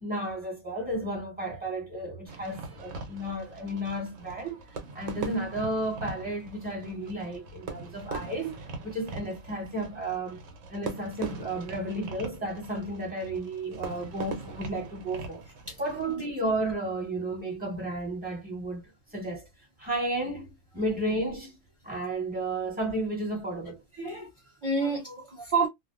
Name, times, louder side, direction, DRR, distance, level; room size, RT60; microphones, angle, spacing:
voice 1, 0.0-4.6 4.9-8.6 8.8-10.4 10.7-15.4 15.8-18.8 19.1-19.5 19.8-23.8, right 1 dB, 5° right, 1.1 m, -33 dB
Fireworks, 2.3-16.2, right 4 dB, 70° right, 1.0 m, -41 dB
voice 2, 24.0-25.7, right 3 dB, 35° right, 0.5 m, -29 dB
2.5 x 2.1 x 2.4 m
omnidirectional pair, 1.4 m